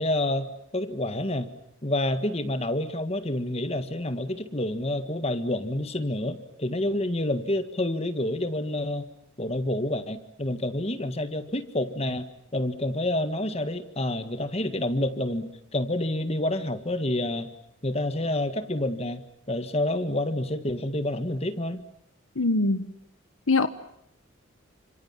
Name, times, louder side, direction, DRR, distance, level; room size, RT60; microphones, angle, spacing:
voice 1, 0.0-1.5 1.8-9.1 9.4-12.3 12.5-17.5 17.8-19.2 19.5-21.8, left 1 dB, 30° left, 10 dB, 1.7 m, -28 dB
voice 2, 22.3-22.9 23.5-23.7, left 3 dB, 80° left, 11 dB, 1.3 m, -22 dB
30.0 x 27.0 x 7.4 m, 0.76 s
head